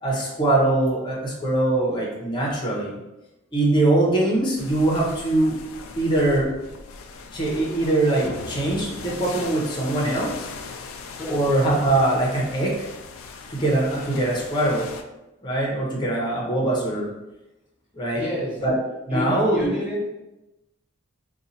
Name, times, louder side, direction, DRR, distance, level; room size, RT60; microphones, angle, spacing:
voice 1, 0.0-2.9 3.5-5.5 6.0-6.5 7.3-10.5 11.3-12.9 13.5-14.9 15.4-17.1 17.9-18.2 18.6-18.8 19.0-19.7, right 2 dB, 20° left, -3 dB, 0.8 m, -22 dB
sound 1, 4.6-15.0, left 4 dB, 80° left, 0.4 m, -38 dB
voice 2, 11.1-11.5 18.1-18.6 19.1-20.1, equal, 5° right, -7 dB, 0.9 m, -30 dB
2.7 x 2.3 x 4.0 m, 0.98 s
head